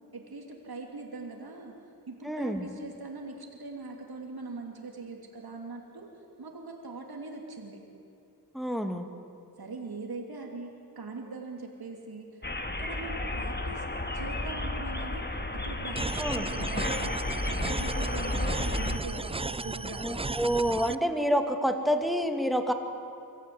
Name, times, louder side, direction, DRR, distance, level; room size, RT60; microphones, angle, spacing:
voice 1, 0.1-1.7 2.1-6.1 6.4-7.8 9.6-12.4 12.8-13.8 14.1-15.3 15.6-20.2, right 3 dB, 70° right, 1 dB, 3.0 m, -41 dB
voice 2, 2.2-2.7 8.5-9.1 16.2-16.5 20.0-22.7, equal, ahead, 6 dB, 2.4 m, -28 dB
sound 1, 12.4-19.0, left 2 dB, 25° left, 1.9 m, -32 dB
sound 2, 16.0-21.0, right 3 dB, 15° right, 0.5 m, -35 dB
24.0 x 14.5 x 9.6 m, 2.7 s
cardioid pair, 50°, 39 cm